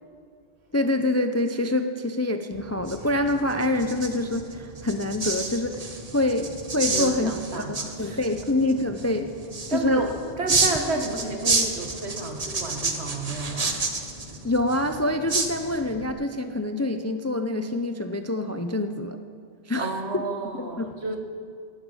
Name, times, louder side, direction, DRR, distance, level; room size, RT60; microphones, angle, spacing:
voice 1, 0.7-5.9 6.1-7.3 7.7-9.3 9.7-10.1 14.4-19.2 19.7-20.2 20.6-20.9, left 2 dB, 20° left, 8 dB, 0.4 m, -26 dB
sound 1, 2.5-16.1, right 3 dB, 35° right, 1.2 m, -30 dB
voice 2, 6.9-8.2 9.7-13.8 19.8-21.2, right 3 dB, 70° right, 4 dB, 1.8 m, -31 dB
17.0 x 12.0 x 5.5 m, 2.3 s
omnidirectional pair, 1.2 m